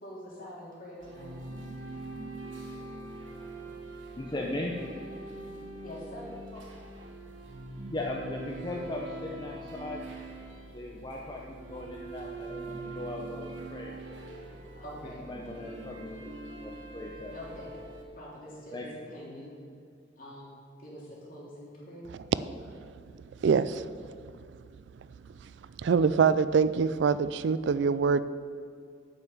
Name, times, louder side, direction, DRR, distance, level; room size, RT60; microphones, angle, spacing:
voice 1, 0.0-1.4 5.8-6.3 14.7-15.2 17.3-17.7 18.2-19.6 20.2-20.5 20.8-22.1, equal, 50° left, -5 dB, 3.0 m, -44 dB
sound 1, 1.0-18.0, right 2 dB, 85° right, 1.5 m, -43 dB
voice 2, 4.1-4.7 6.3-6.6 7.9-10.0 10.7-14.0 15.0-17.4 18.7-18.9, left 1 dB, 25° left, -2 dB, 0.7 m, -38 dB
voice 3, 23.4-23.9 25.8-28.2, right 5 dB, 65° right, 15 dB, 0.3 m, -24 dB
9.0 x 5.6 x 8.1 m, 2.3 s
head